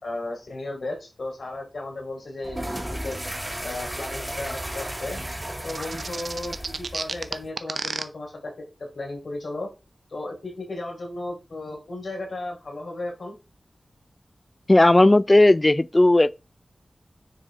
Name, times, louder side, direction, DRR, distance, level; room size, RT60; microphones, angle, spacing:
voice 1, 0.0-3.2 3.6-5.2 5.6-8.7 8.9-9.7 10.1-13.4, left 2 dB, 75° left, 4.1 m, -35 dB
sound 1, 2.4-7.5, right 1 dB, 15° right, 2.6 m, -34 dB
sound 2, 5.7-8.0, right 4 dB, 75° right, 0.7 m, -30 dB
voice 2, 14.7-16.3, left 1 dB, 30° left, 0.4 m, -16 dB
10.0 x 4.7 x 3.7 m
wide cardioid pair, 55°, 0 cm